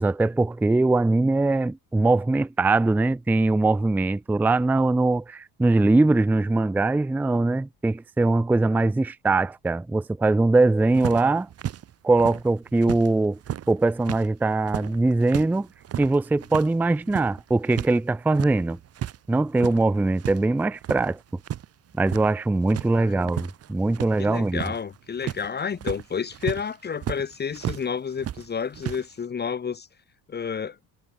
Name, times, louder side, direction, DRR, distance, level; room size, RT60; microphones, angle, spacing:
voice 1, 0.0-11.5 12.0-13.4 13.7-15.7 16.0-18.8 19.3-21.2 22.0-24.6, right 2 dB, 5° right, 0.5 m, -22 dB
sound 1, 10.9-13.1 13.3-18.0 18.2-19.2 19.5-20.4 20.7-21.7 21.9-22.4 22.7-27.9 28.2-29.0, right 10 dB, 40° right, 1.6 m, -34 dB
voice 2, 22.8-23.3 24.2-29.9 30.3-30.8, left 6 dB, 25° left, 2.2 m, -30 dB
cardioid pair, 155°, 39 cm